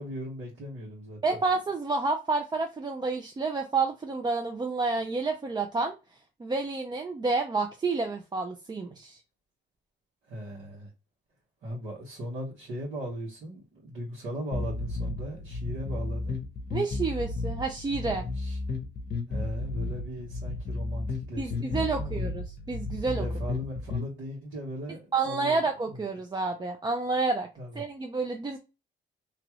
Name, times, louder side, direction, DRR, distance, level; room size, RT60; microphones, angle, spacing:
voice 1, 0.0-1.2 10.2-10.9 11.6-16.4 18.0-18.6 19.3-22.2 23.1-26.0 27.6-27.8, equal, 75° right, 1.5 m, -38 dB
voice 2, 1.2-5.9 6.4-9.2 16.7-18.2 21.4-23.3 25.1-27.5 27.8-28.6, right 3 dB, 20° right, 0.4 m, -29 dB
sound 1, 14.5-24.1, left 3 dB, 50° left, 0.8 m, -33 dB
2.9 x 2.3 x 3.0 m
cardioid pair, 90°, 20 cm